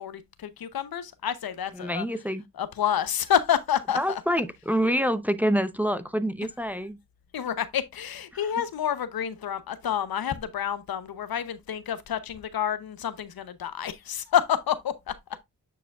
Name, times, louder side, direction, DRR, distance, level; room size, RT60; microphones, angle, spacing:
voice 1, 0.0-2.1 2.5-4.2 7.3-15.2, left 9 dB, 75° left, 0.8 m, -28 dB
voice 2, 1.8-2.4 4.0-7.0, equal, 5° right, 0.7 m, -26 dB
9.1 x 4.9 x 2.3 m
cardioid pair, 55°, 37 cm